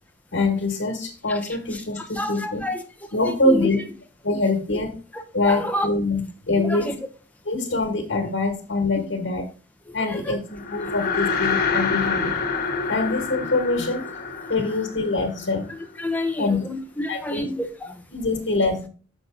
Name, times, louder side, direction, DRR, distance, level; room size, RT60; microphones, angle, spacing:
voice 1, 0.3-2.6 3.1-3.8 4.2-5.0 5.3-6.9 7.4-9.5 9.9-12.4 12.9-14.0 14.5-15.7 16.4-16.6 17.1-17.4 18.1-18.9, left 2 dB, 90° left, 2 dB, 1.5 m, -24 dB
voice 2, 2.2-2.8 3.2-3.7 5.5-5.9 6.5-7.0 9.0-9.1 9.9-10.3 16.0-18.0, left 1 dB, 10° left, 5 dB, 0.9 m, -29 dB
sound 1, 10.5-16.0, left 5 dB, 50° left, 1.5 m, -27 dB
6.6 x 6.1 x 3.9 m, 0.39 s
head